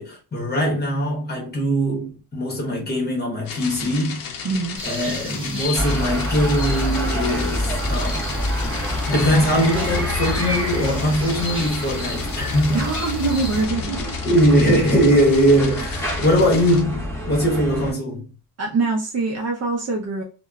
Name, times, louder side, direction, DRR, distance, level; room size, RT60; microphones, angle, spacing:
voice 1, 0.0-4.2 4.8-12.8 13.5-13.9 14.2-18.2, equal, 25° left, 1.0 m, -21 dB
sound 1, 3.4-16.8, left 6 dB, 60° left, 0.6 m, -35 dB
voice 2, 4.4-4.8 12.7-14.1 18.6-20.2, right 3 dB, 40° right, 0.5 m, -24 dB
sound 2, 4.8-13.6, left 1 dB, 15° right, 1.2 m, -34 dB
sound 3, 5.7-17.9, left 1 dB, 5° left, 0.6 m, -27 dB
2.8 x 2.1 x 2.3 m
cardioid pair, 170°, 40 cm